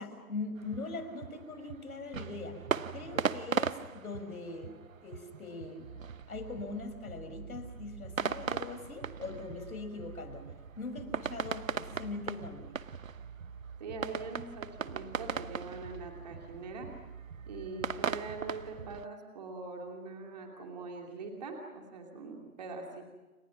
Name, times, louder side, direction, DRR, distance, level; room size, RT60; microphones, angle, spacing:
voice 1, 0.0-2.6 2.9-6.0 6.3-10.5 10.8-12.7, left 3 dB, 75° left, 7 dB, 5.9 m, -41 dB
sound 1, 0.6-19.1, right 7 dB, 60° right, 1.1 m, -39 dB
voice 2, 13.8-16.9 17.5-23.1, right 3 dB, 30° right, 2 dB, 2.8 m, -43 dB
30.0 x 25.5 x 6.0 m, 1.2 s
hypercardioid pair, 175°, 44 cm